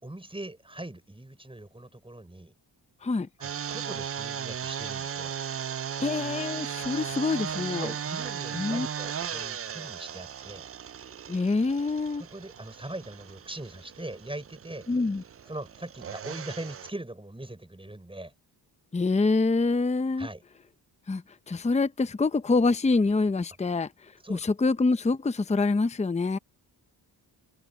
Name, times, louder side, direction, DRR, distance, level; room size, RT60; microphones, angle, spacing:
voice 1, 0.0-2.5 3.4-5.4 7.8-10.7 12.2-14.9 15.5-18.3 20.2-20.4 24.2-24.5, right 1 dB, 15° right, 5.5 m, -41 dB
sound 1, 3.4-16.9, right 8 dB, 35° right, 0.4 m, -36 dB
voice 2, 6.0-7.9 8.5-8.9 11.3-12.2 14.9-15.2 18.9-20.3 21.1-23.9 24.3-26.4, left 3 dB, 15° left, 0.6 m, -26 dB
wide cardioid pair, 120°, 42 cm